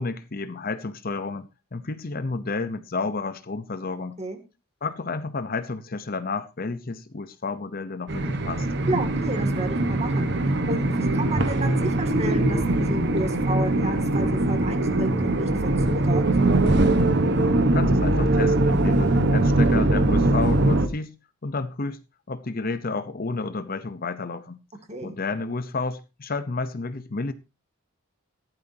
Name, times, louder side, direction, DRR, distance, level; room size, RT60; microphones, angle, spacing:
voice 1, 0.0-4.2 4.8-8.7 17.6-21.1 21.4-22.0 22.3-24.6 25.0-27.3, left 3 dB, 40° left, 0.7 m, -31 dB
sound 1, 8.1-20.9, right 2 dB, 50° right, 1.2 m, -21 dB
voice 2, 8.9-16.2 24.9-25.2, right 1 dB, 30° right, 2.2 m, -32 dB
15.0 x 12.0 x 2.8 m
head